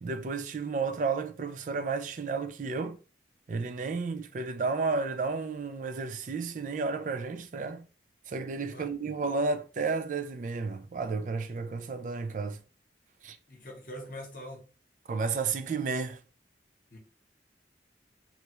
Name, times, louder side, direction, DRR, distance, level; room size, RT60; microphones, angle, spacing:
voice 1, 0.0-3.0 3.5-7.9 8.3-12.6 13.2-13.4 15.1-16.2, right 4 dB, 45° right, 0.3 m, -32 dB
voice 2, 13.5-14.7 16.9-17.0, equal, 45° left, 0.9 m, -43 dB
3.1 x 2.3 x 2.9 m
head